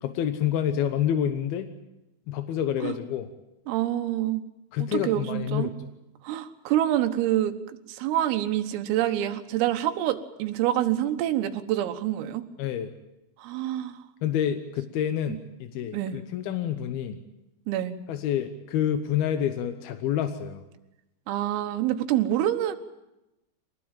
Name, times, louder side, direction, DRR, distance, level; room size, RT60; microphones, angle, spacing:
voice 1, 0.0-1.7 2.3-3.3 4.7-5.9 12.6-12.9 14.2-17.2 18.1-20.6, left 10 dB, 70° left, 9 dB, 2.4 m, -28 dB
voice 2, 3.7-4.4 4.8-5.7 6.2-7.6 7.9-12.4 13.4-14.0 15.3-15.4 15.9-16.2 17.7-18.0 21.3-22.8, right 12 dB, 85° right, 8 dB, 4.0 m, -26 dB
24.5 x 20.0 x 9.1 m, 0.94 s
omnidirectional pair, 5.8 m